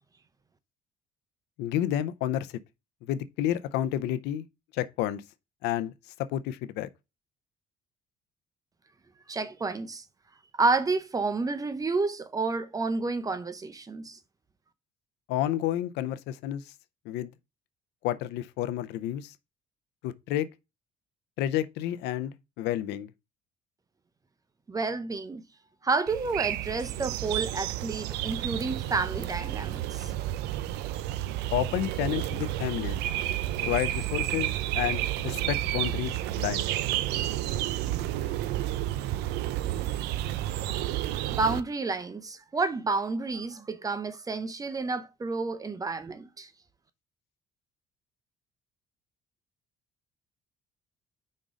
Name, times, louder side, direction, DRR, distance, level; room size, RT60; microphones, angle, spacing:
voice 1, 1.6-2.5 3.1-4.4 4.7-5.2 5.6-5.9 6.3-6.9 15.3-16.6 17.1-17.3 18.0-19.3 20.0-20.5 21.4-23.1 31.5-33.0 33.6-36.7, left 12 dB, 90° left, 0.6 m, -30 dB
voice 2, 9.3-10.0 10.6-14.2 24.7-25.4 25.8-30.1 40.9-46.5, right 3 dB, 20° right, 0.7 m, -30 dB
sound 1, 26.1-41.6, right 14 dB, 90° right, 0.5 m, -31 dB
5.3 x 3.7 x 5.0 m
cardioid pair, 110°, 17 cm